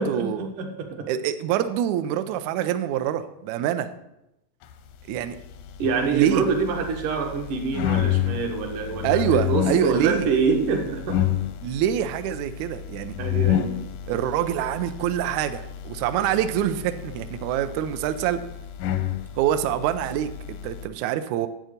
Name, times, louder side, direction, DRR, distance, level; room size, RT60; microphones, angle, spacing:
voice 1, 0.0-0.5 1.1-3.9 5.1-5.4 6.1-6.4 9.0-10.3 11.6-13.1 14.1-18.4 19.4-21.5, right 10 dB, 90° right, 10 dB, 1.6 m, -25 dB
voice 2, 0.6-0.9 5.8-11.2 13.2-13.8, right 5 dB, 75° right, 4 dB, 2.7 m, -25 dB
sound 1, 5.4-20.9, left 11 dB, 85° left, 2.3 m, -30 dB
9.0 x 7.7 x 5.1 m, 0.86 s
omnidirectional pair, 3.9 m